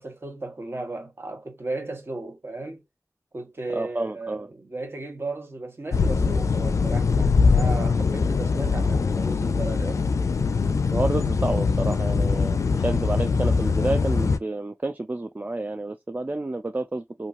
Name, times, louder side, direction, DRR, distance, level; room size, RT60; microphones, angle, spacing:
voice 1, 0.0-2.8 3.3-10.0, right 2 dB, 50° right, 1.3 m, -35 dB
voice 2, 3.7-4.5 10.9-17.3, right 2 dB, 35° right, 0.4 m, -29 dB
sound 1, 5.9-14.4, left 4 dB, 75° left, 0.3 m, -22 dB
3.0 x 2.6 x 2.5 m
wide cardioid pair, 60°, 5 cm